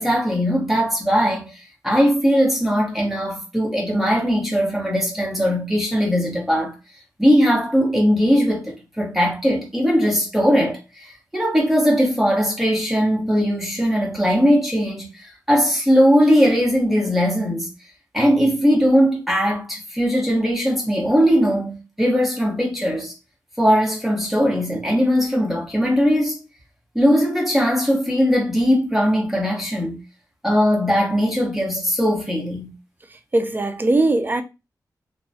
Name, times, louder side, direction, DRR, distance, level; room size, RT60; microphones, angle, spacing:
voice 1, 0.0-6.8 7.2-17.7 18.1-23.1 23.6-26.4 26.9-30.0 30.4-32.7, equal, 5° right, 1.2 m, -19 dB
voice 2, 33.3-34.4, right 2 dB, 25° right, 0.4 m, -19 dB
2.8 x 2.2 x 2.7 m
cardioid pair, 65°, 7 cm